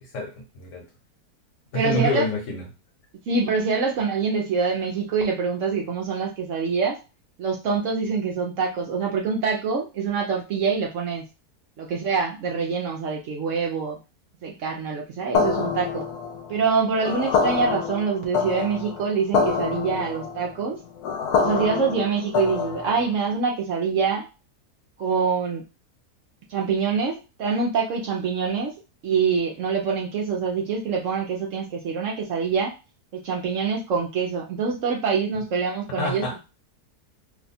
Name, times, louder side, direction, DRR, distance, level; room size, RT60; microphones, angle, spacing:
voice 1, 0.0-0.8 1.7-2.6 36.0-36.4, left 1 dB, 60° left, 0 dB, 1.2 m, -27 dB
voice 2, 1.7-2.3 3.3-7.0 7.4-11.2 11.8-14.0 14.4-16.1 16.5-20.8 21.4-24.3 25.0-25.6 26.5-28.7 29.0-32.7 33.1-36.4, right 5 dB, 65° right, 0 dB, 0.8 m, -25 dB
sound 1, 15.3-23.1, left 5 dB, 85° left, 1.1 m, -26 dB
2.8 x 2.3 x 4.0 m, 0.30 s
omnidirectional pair, 1.6 m